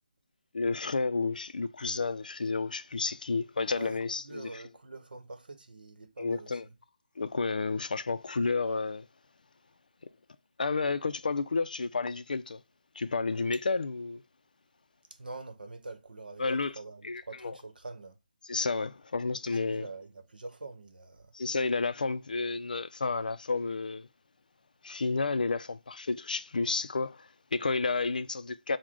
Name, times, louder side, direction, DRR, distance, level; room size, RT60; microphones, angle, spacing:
voice 1, 0.5-4.5 6.2-6.6 7.2-9.1 10.6-12.6 13.0-14.2 16.4-16.8 17.0-17.5 18.5-19.9 21.3-24.1 24.8-28.8, left 4 dB, 70° left, 0.4 m, -31 dB
voice 2, 3.7-6.7 15.1-16.4 16.7-18.2 19.6-21.3, right 3 dB, 85° right, 0.9 m, -45 dB
6.1 x 2.2 x 3.6 m
hypercardioid pair, 175°, 5 cm